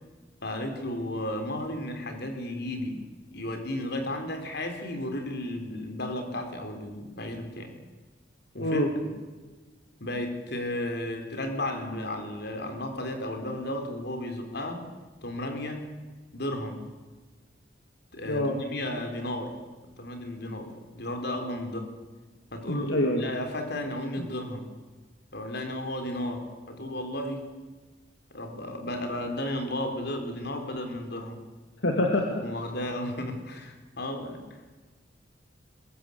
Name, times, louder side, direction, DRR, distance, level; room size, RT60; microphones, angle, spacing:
voice 1, 0.4-3.1 3.3-7.7 8.5-9.1 10.0-14.9 15.2-15.9 16.3-16.8 18.1-19.5 20.0-21.9 22.5-24.7 25.3-27.5 28.3-31.4 32.4-34.8, left 1 dB, 60° left, 5 dB, 4.2 m, -34 dB
voice 2, 8.6-8.9 18.3-18.6 22.7-23.2 24.2-24.3 31.8-32.4, left 1 dB, 75° left, 2 dB, 2.6 m, -25 dB
21.5 x 21.5 x 8.6 m, 1.3 s
head